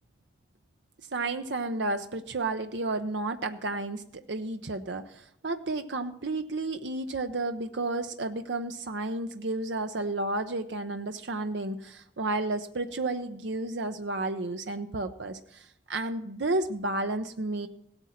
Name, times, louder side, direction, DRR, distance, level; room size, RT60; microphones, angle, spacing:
voice 1, 1.1-17.7, right 2 dB, 90° right, 7 dB, 0.8 m, -32 dB
17.0 x 8.9 x 5.8 m, 0.73 s
head